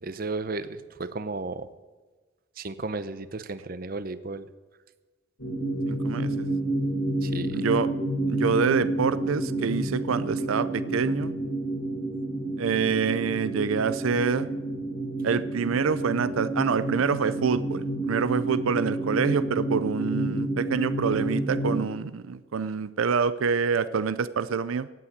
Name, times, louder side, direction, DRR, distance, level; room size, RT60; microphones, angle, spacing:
voice 1, 0.0-1.7 2.6-4.5 7.2-7.7, right 3 dB, 45° right, 14 dB, 0.7 m, -34 dB
sound 1, 5.4-21.8, right 2 dB, 80° left, 3.7 m, -29 dB
voice 2, 5.9-6.5 7.5-7.9 8.3-11.3 12.6-14.5 15.2-24.9, right 5 dB, 85° right, 16 dB, 0.5 m, -26 dB
17.0 x 8.5 x 8.1 m, 1.3 s
head